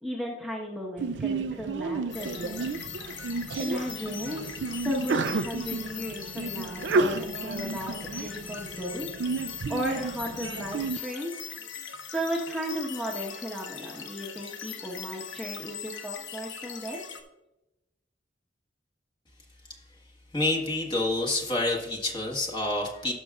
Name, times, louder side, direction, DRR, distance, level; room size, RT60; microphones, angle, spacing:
voice 1, 0.0-2.6 3.6-9.1 9.4-11.3 12.1-17.0, equal, ahead, -3 dB, 1.2 m, -35 dB
Sneeze, 1.0-11.0, right 4 dB, 70° right, 0.4 m, -32 dB
sound 1, 2.1-17.2, left 7 dB, 85° left, 1.0 m, -40 dB
voice 2, 20.3-23.1, left 2 dB, 25° left, -2 dB, 1.6 m, -28 dB
17.5 x 6.2 x 2.4 m, 0.96 s
head